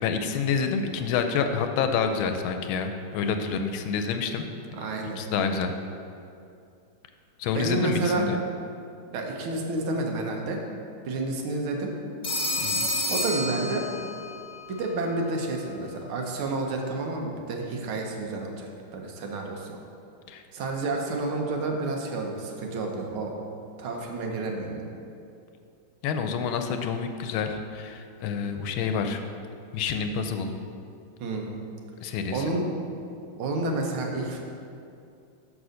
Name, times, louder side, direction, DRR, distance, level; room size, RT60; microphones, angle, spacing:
voice 1, 0.0-4.4 5.2-5.7 7.4-8.4 12.6-12.9 20.3-20.4 26.0-29.2 29.7-30.5 32.0-32.5, left 6 dB, 80° left, 6 dB, 1.4 m, -28 dB
voice 2, 4.7-5.2 7.5-8.3 9.1-10.6 11.1-11.9 13.1-13.9 14.7-19.8 20.5-23.3 23.8-25.0 31.2-31.6 32.3-32.7 33.4-34.4, right 2 dB, 85° right, 1 dB, 1.8 m, -30 dB
Telephone, 12.2-14.3, left 1 dB, 30° left, 0.7 m, -29 dB
6.2 x 5.4 x 6.3 m, 2.5 s
omnidirectional pair, 2.3 m